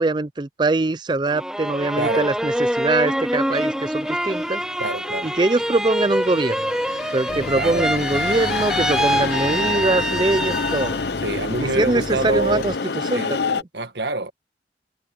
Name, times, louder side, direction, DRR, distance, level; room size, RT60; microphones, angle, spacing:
voice 1, 0.0-4.6 5.2-6.6 7.1-11.0 11.8-12.7 13.1-13.6, right 2 dB, 25° right, 0.4 m, -22 dB
sound 1, 1.3-11.1 11.5-12.2, equal, 5° right, 0.8 m, -25 dB
sound 2, 2.0-13.6, left 4 dB, 70° left, 0.8 m, -30 dB
voice 2, 2.0-2.3 4.8-5.3 7.5-7.9 11.2-12.7 13.1-13.3 13.7-14.3, right 2 dB, 75° right, 1.7 m, -26 dB
Mechanisms, 7.3-12.8, left 2 dB, 50° left, 1.3 m, -33 dB
head